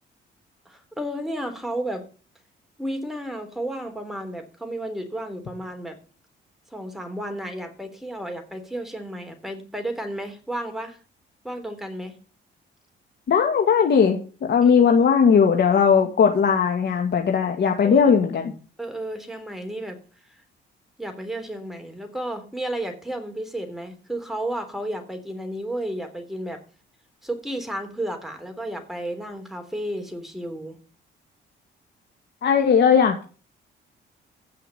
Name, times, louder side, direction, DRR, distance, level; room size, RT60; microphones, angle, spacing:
voice 1, 0.7-2.0 2.8-6.0 6.7-11.0 11.4-12.2 14.6-14.7 17.8-18.1 18.8-20.0 20.3-20.4 21.0-26.6 27.2-30.8, right 1 dB, ahead, 4 dB, 3.6 m, -32 dB
voice 2, 13.3-14.2 14.5-18.5 32.4-33.2, left 6 dB, 60° left, 3 dB, 2.2 m, -18 dB
16.0 x 5.7 x 9.2 m, 0.39 s
cardioid pair, 90°, 20 cm